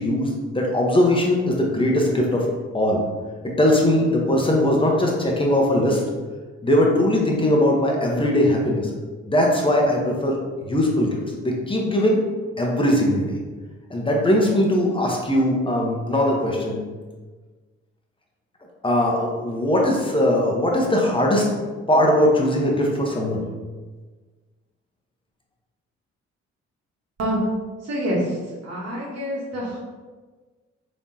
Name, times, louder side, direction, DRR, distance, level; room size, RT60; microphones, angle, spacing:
voice 1, 0.0-2.4 2.7-3.0 3.6-6.0 6.6-8.9 9.3-10.3 10.6-11.2 11.4-12.2 12.6-13.4 13.9-16.8 18.8-21.5 21.9-23.4, left 1 dB, 15° left, -1 dB, 1.0 m, -20 dB
voice 2, 27.8-28.4 28.6-29.8, equal, 50° right, -5 dB, 1.3 m, -26 dB
3.5 x 3.0 x 2.8 m, 1.4 s
hypercardioid pair, 45°, 32 cm